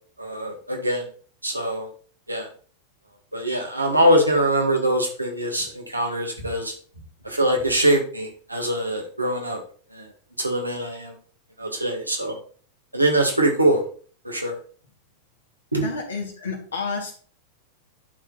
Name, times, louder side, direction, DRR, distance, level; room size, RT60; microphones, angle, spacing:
voice 1, 0.2-1.1 1.4-1.9 2.3-2.5 3.3-6.7 7.2-9.6 9.9-10.1 10.4-11.1 11.6-12.4 12.9-13.8 14.2-14.6 15.7-15.8, right 1 dB, 85° right, 1 dB, 1.9 m, -23 dB
voice 2, 15.8-17.1, left 4 dB, 70° left, 2 dB, 2.4 m, -31 dB
10.5 x 4.8 x 4.0 m, 0.43 s
figure-of-eight pair, 90°, 0 cm